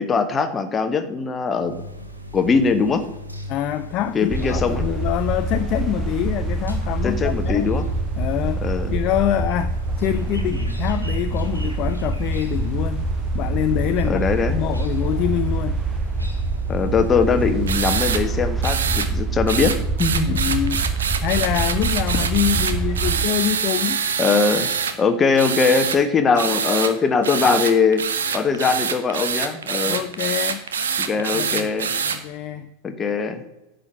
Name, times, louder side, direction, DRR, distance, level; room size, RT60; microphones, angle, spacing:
voice 1, 0.0-1.8 2.3-3.1 4.1-4.9 7.0-7.9 8.6-9.0 14.0-14.6 16.7-20.4 24.2-24.7 25.0-28.0 28.3-30.0 31.0-31.9 32.8-33.4, left 5 dB, 20° left, 8 dB, 1.2 m, -21 dB
sound 1, 1.5-17.8, right 1 dB, 85° right, 1.5 m, -39 dB
voice 2, 3.5-7.7 8.2-14.2 14.5-15.8 17.3-17.5 20.3-20.8 21.2-24.0 29.9-30.6 31.2-31.7 32.0-32.7, left 11 dB, 40° left, 11 dB, 0.5 m, -25 dB
sound 2, 4.3-23.3, right 3 dB, 10° right, 0.7 m, -25 dB
sound 3, 17.7-18.2 18.6-19.1 19.5-24.9 25.4-26.0 26.4-26.9 27.2-32.2, right 6 dB, 65° right, 1.0 m, -25 dB
10.5 x 5.2 x 8.0 m, 0.99 s
figure-of-eight pair, 90°, 0 cm